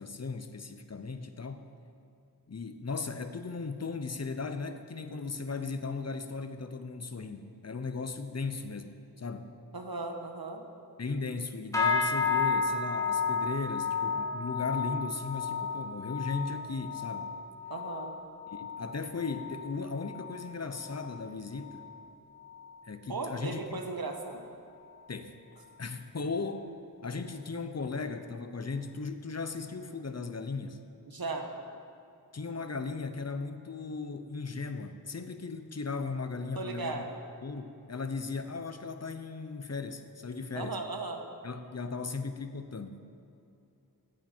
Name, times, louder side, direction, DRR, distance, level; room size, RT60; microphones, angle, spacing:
voice 1, 0.0-1.7 2.5-9.5 11.0-17.3 18.5-21.9 22.8-23.8 25.1-25.4 25.8-26.7 27.0-30.8 32.3-37.0 37.4-40.8 41.4-43.0, left 4 dB, 40° left, 9 dB, 0.8 m, -37 dB
voice 2, 9.7-10.6 17.7-18.2 23.1-24.4 31.1-31.5 36.5-37.2 40.5-41.2, right 3 dB, 65° right, 4 dB, 1.2 m, -36 dB
sound 1, 11.7-21.3 21.6-22.0 22.4-22.7 23.3-23.4, left 5 dB, 10° left, 2.4 m, -33 dB
14.5 x 8.7 x 4.4 m, 2.7 s
wide cardioid pair, 45°, 40 cm